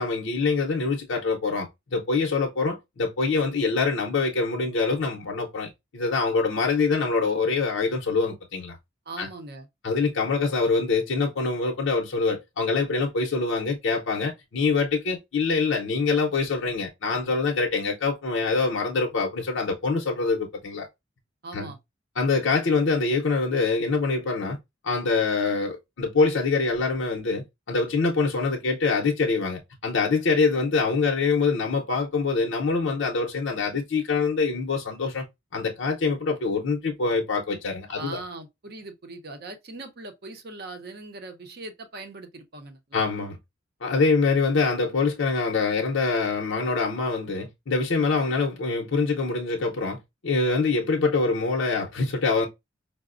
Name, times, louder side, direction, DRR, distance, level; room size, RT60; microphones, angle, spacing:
voice 1, 0.0-8.8 9.2-9.3 9.8-20.9 21.5-21.7 22.2-24.6 24.8-35.2 35.5-38.2 42.9-43.4 43.8-52.5, left 4 dB, 75° left, 0.7 m, -25 dB
voice 2, 9.1-9.7 21.4-21.8 37.9-43.0 48.1-48.2, right 2 dB, 50° right, 0.6 m, -40 dB
4.8 x 2.0 x 2.4 m
head